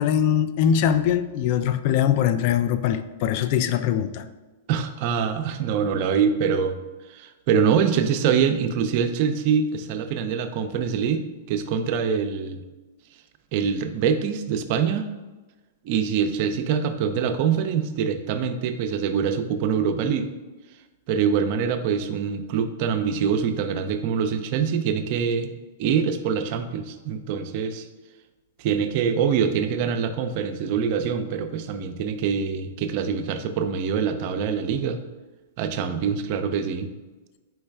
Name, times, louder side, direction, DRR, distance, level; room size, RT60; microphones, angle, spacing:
voice 1, 0.0-4.2, left 9 dB, 50° left, 0.3 m, -22 dB
voice 2, 4.7-6.8 7.1-12.6 13.5-15.1 15.8-20.3 21.1-25.5 25.8-27.9 28.6-35.0 35.6-36.9, right 7 dB, 50° right, 0.4 m, -24 dB
4.5 x 3.1 x 3.4 m
hypercardioid pair, 115°, 0 cm